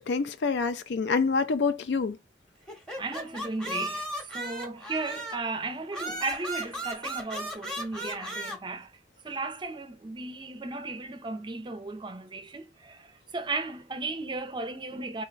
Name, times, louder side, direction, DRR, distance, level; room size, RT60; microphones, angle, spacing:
voice 1, 0.0-2.2, left 4 dB, 65° left, 0.4 m, -27 dB
sound 1, 2.7-5.5 5.9-8.6, equal, 5° left, 0.8 m, -36 dB
voice 2, 3.0-8.9 9.2-15.2, right 3 dB, 25° right, 0.5 m, -35 dB
3.7 x 2.1 x 3.8 m
head